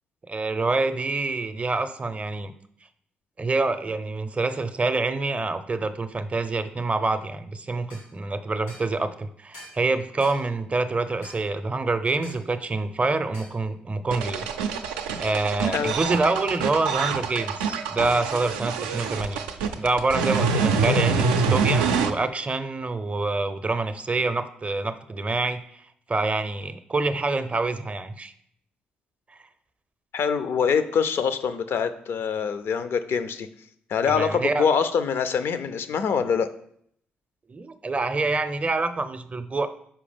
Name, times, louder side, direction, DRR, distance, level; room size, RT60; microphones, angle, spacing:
voice 1, 0.3-2.5 3.4-14.5 15.2-19.4 19.8-25.6 26.1-28.3 34.1-34.6 37.5-39.7, right 3 dB, 30° right, 10 dB, 0.5 m, -26 dB
sound 1, 7.9-8.1 8.7-8.9 9.5-9.8 10.2-10.4 11.2-11.4 12.2-12.4 13.3-13.6, left 1 dB, 90° left, 1.9 m, -45 dB
sound 2, 14.1-22.1, right 5 dB, 80° right, 0.4 m, -25 dB
voice 2, 30.1-33.5 33.9-36.5, left 6 dB, 60° left, 12 dB, 0.5 m, -24 dB
5.8 x 4.9 x 3.4 m, 0.67 s
hypercardioid pair, 45°, 5 cm